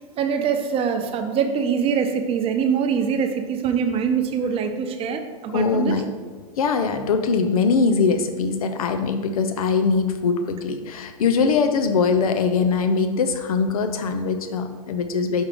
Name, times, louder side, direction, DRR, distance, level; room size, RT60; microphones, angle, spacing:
voice 1, 0.2-6.0, right 7 dB, 30° right, 6 dB, 0.7 m, -23 dB
voice 2, 5.5-6.1 6.6-15.4, left 5 dB, 90° left, 8 dB, 0.6 m, -22 dB
6.2 x 3.6 x 5.2 m, 1.5 s
hypercardioid pair, 120°, 18 cm